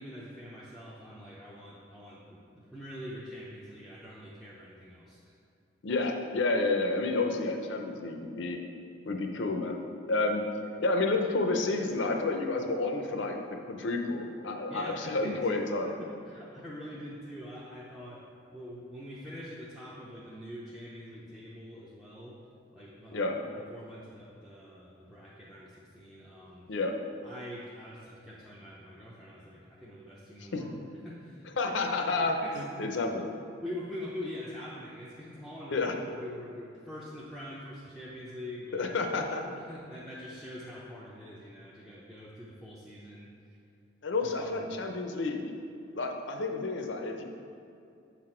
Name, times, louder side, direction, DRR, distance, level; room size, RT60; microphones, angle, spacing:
voice 1, 0.0-5.2 14.7-15.5 15.9-22.4 22.7-23.3 23.7-26.7 27.2-30.7 31.0-31.7 32.2-32.9 33.6-38.9 39.5-43.4 44.2-44.7, left 1 dB, ahead, -7 dB, 0.5 m, -44 dB
voice 2, 5.8-8.6 9.1-9.8 10.1-10.4 10.8-13.4 13.7-15.9 23.1-23.4 26.7-26.9 30.5-30.6 31.6-33.3 35.7-35.9 38.7-39.6 44.0-45.4 45.9-47.2, left 3 dB, 65° left, 4 dB, 0.6 m, -30 dB
7.0 x 4.1 x 4.3 m, 2.6 s
head